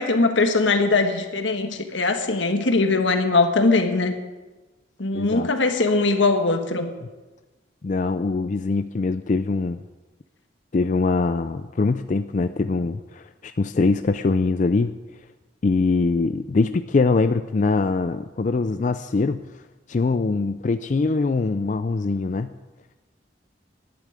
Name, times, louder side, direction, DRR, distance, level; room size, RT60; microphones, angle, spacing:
voice 1, 0.0-4.1 5.0-6.9, left 3 dB, 80° left, 6 dB, 1.5 m, -21 dB
voice 2, 5.1-5.5 7.8-9.8 10.7-14.9 15.6-19.4 19.9-22.5, left 3 dB, 40° left, 10 dB, 0.4 m, -23 dB
11.0 x 8.4 x 9.5 m, 1.2 s
head